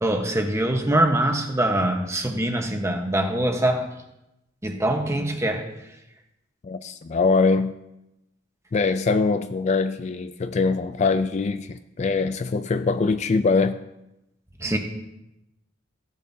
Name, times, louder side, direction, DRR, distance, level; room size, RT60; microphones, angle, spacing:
voice 1, 0.0-3.9 4.6-5.7 14.6-14.8, right 1 dB, 15° right, 1.1 m, -23 dB
voice 2, 6.6-7.8 8.7-13.8, left 4 dB, 35° left, 0.3 m, -23 dB
15.0 x 10.5 x 2.8 m
head